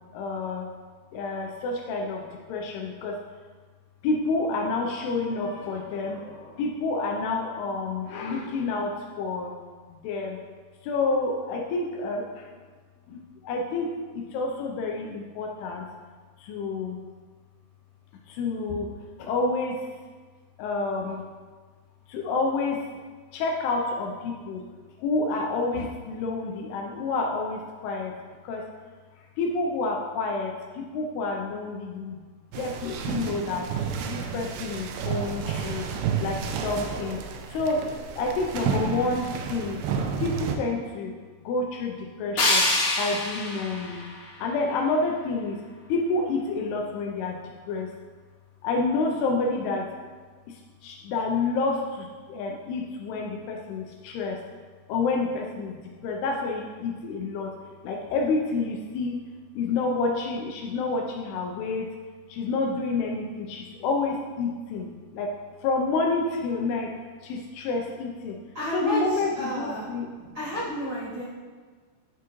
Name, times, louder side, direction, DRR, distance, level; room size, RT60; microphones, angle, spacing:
voice 1, 0.1-0.7 1.1-3.2 4.0-9.5 9.9-10.4 10.8-12.5 13.1-15.9 16.4-17.0 18.3-18.9 19.2-19.8 20.6-21.2 22.1-22.8 23.3-24.7 25.0-28.1 28.4-28.6 29.4-32.2 32.6-33.7 34.1-35.9 36.2-37.2 37.5-37.9 38.1-39.8 40.2-41.1 41.4-42.7 43.0-44.0 44.4-45.6 45.9-47.4 47.7-47.9 48.6-49.9 50.5-54.4 54.9-57.5 57.8-59.2 59.6-61.9 62.3-65.3 65.6-66.9 67.2-68.4 68.7-70.1, left 3 dB, 80° left, 1 dB, 2.5 m, -29 dB
sound 1, 32.5-40.6, right 6 dB, 85° right, 2.6 m, -31 dB
sound 2, 42.4-45.3, left 2 dB, 60° left, 1.4 m, -27 dB
voice 2, 68.5-69.9 70.3-71.2, left 1 dB, 40° right, -13 dB, 1.9 m, -31 dB
10.0 x 5.8 x 3.0 m, 1.5 s
omnidirectional pair, 4.9 m